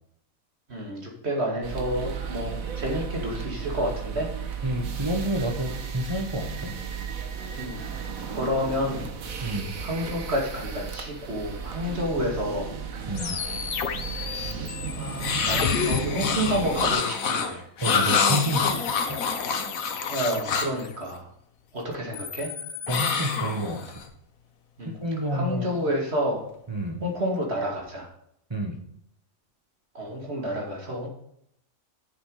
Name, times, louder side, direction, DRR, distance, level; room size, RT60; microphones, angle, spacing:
voice 1, 0.7-4.3 7.6-7.8 8.3-9.1 9.8-12.7 14.2-17.6 20.1-21.3 21.7-22.5 24.8-24.9 25.3-26.4 27.0-28.1 29.9-31.1, equal, 50° right, 0 dB, 2.6 m, -29 dB
sound 1, 1.6-16.9, right 6 dB, 75° right, 1.6 m, -34 dB
voice 2, 4.6-6.8 9.4-9.8 13.1-13.4 17.8-19.2 22.9-24.0 24.8-25.9 26.7-27.0 28.5-28.8, right 1 dB, 20° right, 3 dB, 1.3 m, -29 dB
sound 2, 13.1-16.0 18.3-21.1 21.9-23.2, left 8 dB, 50° left, 0.8 m, -33 dB
sound 3, 15.2-20.8 22.9-24.0, left 5 dB, 75° left, 1.5 m, -26 dB
9.4 x 7.1 x 4.9 m, 0.72 s
omnidirectional pair, 1.5 m